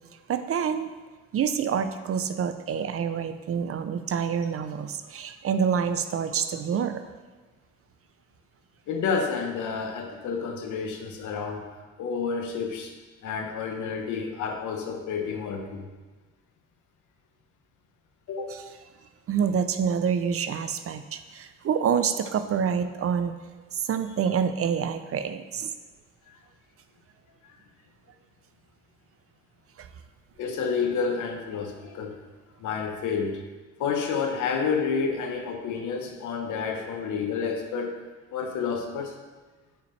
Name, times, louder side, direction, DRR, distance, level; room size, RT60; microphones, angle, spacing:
voice 1, 0.3-0.9 1.3-7.0 18.5-18.6 19.3-23.3 23.7-25.7 29.8-29.9, right 7 dB, 50° right, 10 dB, 0.6 m, -27 dB
voice 2, 8.9-11.7 12.0-12.9 13.2-15.9 18.3-18.6 27.4-27.5 30.4-32.1 32.6-33.4 33.8-38.0 38.3-39.1, left 5 dB, 80° left, 4 dB, 1.1 m, -29 dB
8.6 x 5.7 x 3.2 m, 1.3 s
cardioid pair, 90°, 30 cm